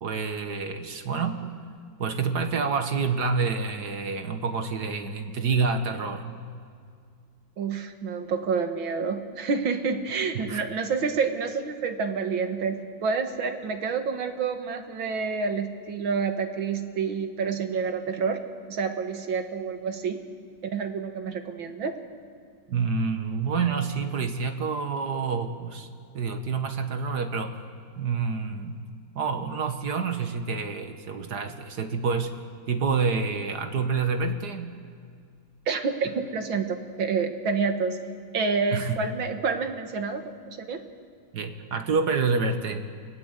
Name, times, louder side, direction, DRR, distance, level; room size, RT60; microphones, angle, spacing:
voice 1, 0.0-1.6 2.0-6.4 10.4-10.6 22.7-25.9 26.1-27.6 28.0-28.9 29.2-34.7 38.7-39.1 41.3-42.9, right 5 dB, 60° right, 7 dB, 1.8 m, -28 dB
voice 2, 7.6-18.4 18.7-20.2 20.6-22.0 35.7-38.0 38.3-40.8, right 5 dB, 90° right, 6 dB, 2.4 m, -28 dB
29.0 x 19.5 x 8.2 m, 2.2 s
omnidirectional pair, 2.1 m